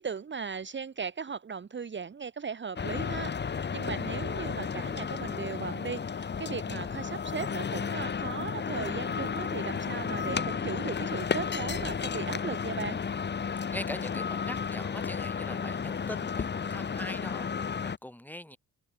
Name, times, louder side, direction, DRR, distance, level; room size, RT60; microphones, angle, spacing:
voice 1, 0.0-13.0, right 6 dB, 35° right, 1.4 m, -37 dB
sound 1, 2.8-18.0, left 6 dB, 30° left, 1.0 m, -33 dB
voice 2, 13.7-18.6, left 1 dB, 5° left, 3.9 m, -42 dB
open air
cardioid pair, 100°, 34 cm